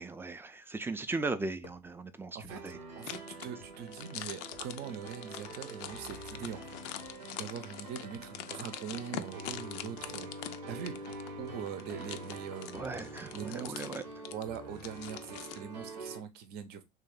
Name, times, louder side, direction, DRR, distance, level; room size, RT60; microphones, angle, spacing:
voice 1, 0.0-2.8 12.7-14.0, right 3 dB, 10° right, 0.5 m, -38 dB
sound 1, 1.6-2.0 2.4-2.9 3.6-4.0 4.4-5.0 5.8-6.1 7.0-7.3 8.1-8.4, left 6 dB, 90° left, 0.7 m, -58 dB
Piano, 2.5-16.2, right 2 dB, 85° right, 0.9 m, -46 dB
voice 2, 2.9-6.6 7.3-12.9 13.3-13.9 14.3-16.8, right 8 dB, 50° right, 0.7 m, -42 dB
sound 2, 3.0-15.6, left 11 dB, 55° left, 0.4 m, -44 dB
3.3 x 2.7 x 3.8 m
figure-of-eight pair, 65°, 21 cm